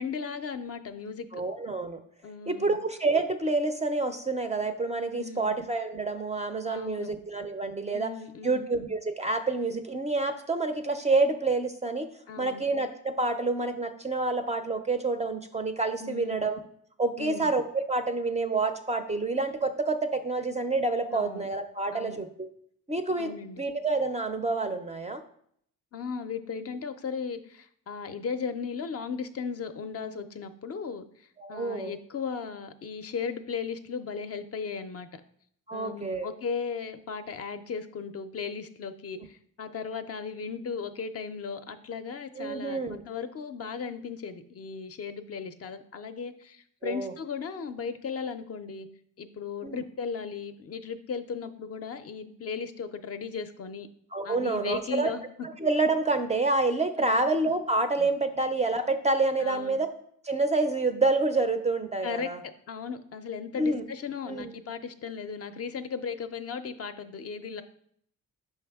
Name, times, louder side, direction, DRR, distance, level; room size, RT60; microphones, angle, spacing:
voice 1, 0.0-1.4 2.2-2.8 5.2-5.5 6.7-7.1 7.9-8.7 12.3-12.7 16.0-16.4 17.2-17.5 21.1-21.5 21.9-22.2 23.2-23.6 25.9-35.2 35.7-48.9 49.2-53.9 54.2-55.2 57.0-57.3 58.0-58.1 59.4-59.8 62.0-67.6, left 6 dB, 45° left, 9 dB, 0.4 m, -36 dB
voice 2, 1.3-2.0 2.5-8.1 8.4-12.1 12.4-16.6 17.0-22.5 22.9-23.3 23.6-25.2 31.4-31.9 35.7-36.3 42.4-43.0 46.8-47.1 49.6-49.8 54.1-55.1 55.6-59.9 60.2-62.4 63.6-63.8 64.3-64.5, right 3 dB, 20° right, 7 dB, 0.4 m, -28 dB
5.6 x 5.4 x 3.4 m, 0.65 s
cardioid pair, 120°, 36 cm